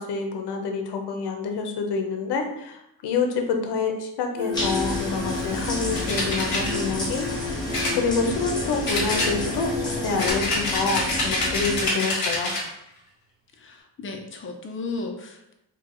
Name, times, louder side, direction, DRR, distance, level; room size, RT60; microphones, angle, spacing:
voice 1, 0.0-7.7 7.9-12.5, left 5 dB, 75° left, 4 dB, 0.8 m, -27 dB
Singing, 4.4-10.3, left 3 dB, 85° right, 1.5 m, -34 dB
sound 1, 4.5-11.9, left 1 dB, 10° left, 1.1 m, -30 dB
sound 2, 5.9-6.7 7.7-8.5 8.9-9.7 10.2-12.7, left 2 dB, 60° left, 1.5 m, -26 dB
voice 2, 13.6-15.5, left 3 dB, 30° left, 3 dB, 0.6 m, -35 dB
4.5 x 2.3 x 3.7 m, 0.84 s
cardioid pair, 145°, 40 cm